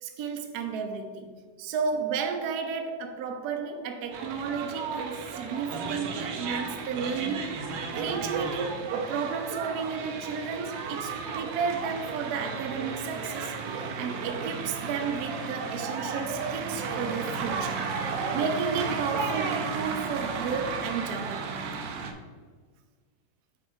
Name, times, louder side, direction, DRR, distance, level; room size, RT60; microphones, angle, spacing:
voice 1, 0.0-7.6 7.9-17.8 18.3-21.7, right 5 dB, 70° right, 5 dB, 1.1 m, -33 dB
sound 1, 4.1-22.1, right 5 dB, 85° right, 1.4 m, -33 dB
6.5 x 4.3 x 4.5 m, 1.5 s
omnidirectional pair, 1.9 m